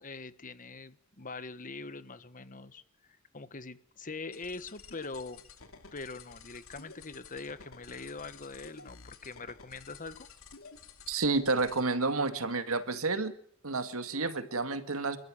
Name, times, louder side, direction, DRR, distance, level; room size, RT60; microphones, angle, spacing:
voice 1, 0.0-2.8 3.3-5.4 5.9-10.3, left 3 dB, 40° left, 13 dB, 1.4 m, -43 dB
sound 1, 4.3-11.8, left 4 dB, 75° left, 2.7 m, -52 dB
voice 2, 11.1-13.3 13.6-15.2, right 3 dB, 90° right, 9 dB, 2.1 m, -30 dB
28.0 x 13.5 x 9.1 m, 0.63 s
head